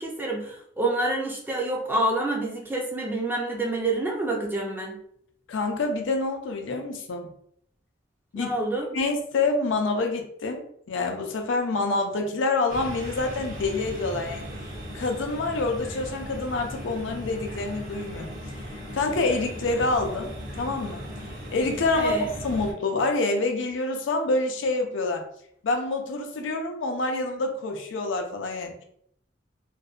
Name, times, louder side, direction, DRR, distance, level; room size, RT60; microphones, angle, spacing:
voice 1, 0.0-5.0 8.3-8.9 22.0-22.3, right 2 dB, 10° right, -1 dB, 0.4 m, -27 dB
voice 2, 5.5-7.3 8.3-8.5 8.9-14.4 14.9-18.3 18.9-20.3 20.6-21.0 21.5-22.1 22.4-25.3 25.6-28.8, left 3 dB, 80° left, 4 dB, 0.4 m, -27 dB
sound 1, 12.7-22.7, equal, 45° right, 0.9 m, -37 dB
2.6 x 2.1 x 2.3 m, 0.68 s
head